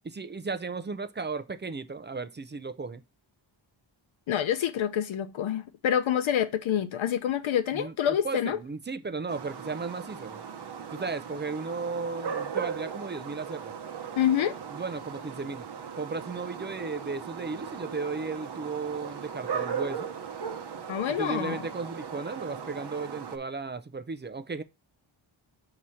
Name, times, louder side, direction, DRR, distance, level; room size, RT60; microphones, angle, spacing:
voice 1, 0.0-3.0 7.7-10.4 10.9-13.7 14.7-15.7 16.0-20.1 21.1-24.6, right 4 dB, 25° right, 0.4 m, -35 dB
voice 2, 4.3-8.6 14.2-14.6 20.9-21.6, left 10 dB, 80° left, 0.6 m, -27 dB
sound 1, 9.3-23.4, right 7 dB, 55° right, 0.8 m, -38 dB
6.2 x 2.9 x 5.5 m
wide cardioid pair, 120°, 47 cm